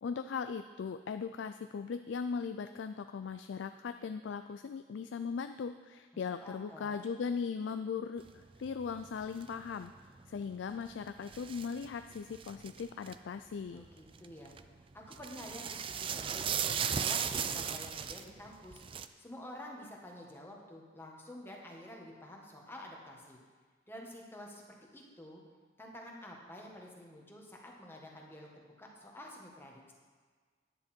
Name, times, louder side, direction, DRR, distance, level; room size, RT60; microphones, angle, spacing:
voice 1, 0.0-8.2 8.6-9.9 10.3-13.8, left 5 dB, 80° left, 9 dB, 0.4 m, -38 dB
voice 2, 6.1-7.0 13.7-14.5 14.9-16.4 16.8-18.8 19.2-23.4 23.9-25.4 25.8-29.9, left 1 dB, 15° left, -1 dB, 1.5 m, -49 dB
sound 1, 8.3-13.2 13.8-14.7 15.0-19.1, right 7 dB, 30° right, 0.4 m, -37 dB
10.5 x 9.5 x 4.4 m, 1.5 s
head